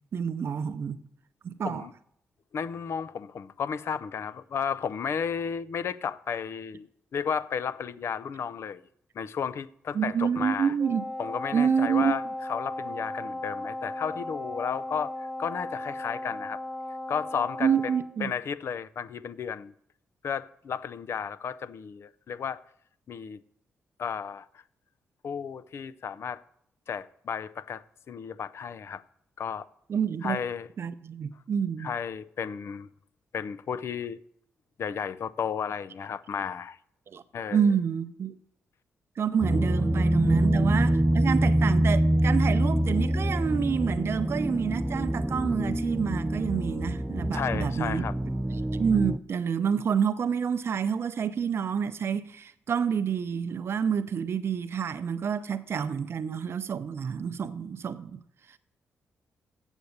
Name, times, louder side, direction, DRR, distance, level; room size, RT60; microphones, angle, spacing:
voice 1, 0.1-1.0 1.4-1.9 9.9-11.0 11.5-12.1 17.6-18.3 29.9-30.4 30.8-31.9 37.1-37.2 37.5-38.4 39.2-48.1 48.6-58.2, right 7 dB, 55° right, 0.6 m, -28 dB
voice 2, 2.5-8.8 9.2-10.7 11.2-12.2 12.5-16.6 17.1-17.7 18.2-19.7 20.2-22.6 23.1-23.4 24.0-24.5 25.2-26.4 26.9-29.0 29.4-29.7 30.2-30.7 31.8-32.9 33.3-34.2 34.8-36.8 37.3-37.7 47.3-48.1, left 7 dB, 60° left, 0.5 m, -33 dB
Wind instrument woodwind instrument, 10.8-18.1, left 1 dB, 25° left, 2.1 m, -36 dB
sound 1, 39.4-49.2, right 1 dB, 10° right, 0.4 m, -25 dB
8.2 x 7.2 x 6.5 m
cardioid pair, 70°, 5 cm